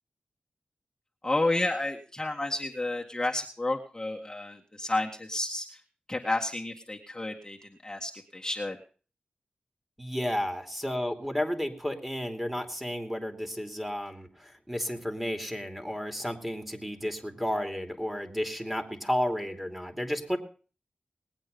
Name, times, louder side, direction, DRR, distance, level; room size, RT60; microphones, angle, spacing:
voice 1, 1.2-5.8 6.1-8.8, left 2 dB, 20° left, 0 dB, 1.9 m, -31 dB
voice 2, 10.0-14.3 14.7-20.4, equal, 5° right, 6 dB, 2.8 m, -32 dB
20.0 x 8.7 x 5.3 m, 0.39 s
cardioid pair, 45°, 3 cm